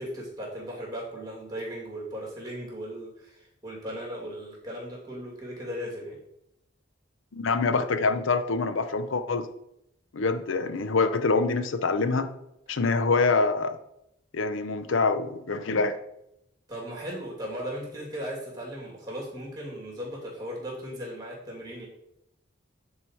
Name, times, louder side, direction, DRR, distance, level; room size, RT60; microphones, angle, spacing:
voice 1, 0.0-6.2 16.7-21.9, equal, 20° right, -3 dB, 2.6 m, -37 dB
voice 2, 7.3-9.5 10.1-12.3 12.7-13.8 14.3-16.0, left 4 dB, 80° left, 10 dB, 0.6 m, -25 dB
9.5 x 4.8 x 4.5 m, 0.81 s
head